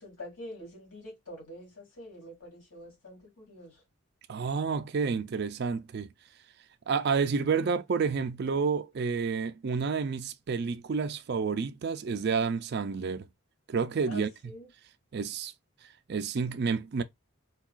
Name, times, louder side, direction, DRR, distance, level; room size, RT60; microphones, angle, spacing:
voice 1, 0.0-3.8 14.1-14.7, left 1 dB, 75° left, 2.5 m, -45 dB
voice 2, 4.3-6.1 6.9-13.3 13.7-14.5 15.1-15.5 16.1-17.0, right 5 dB, 50° right, 0.4 m, -30 dB
4.5 x 2.3 x 2.3 m
head